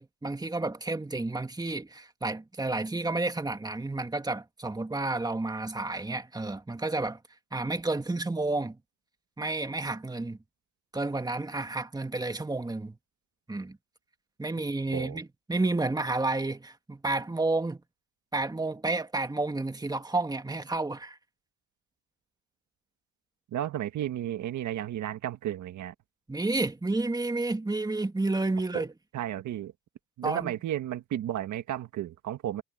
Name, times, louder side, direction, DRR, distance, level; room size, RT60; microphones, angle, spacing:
voice 1, 0.0-7.2 7.5-8.8 9.4-10.4 10.9-13.0 13.5-13.8 14.4-17.8 18.3-21.2 26.3-28.9 30.2-30.5, right 2 dB, 15° right, 1.9 m, -30 dB
voice 2, 23.5-25.9 28.7-28.8 29.1-29.7 30.2-32.6, right 12 dB, 75° right, 1.6 m, -33 dB
cardioid pair, 90°, 30 cm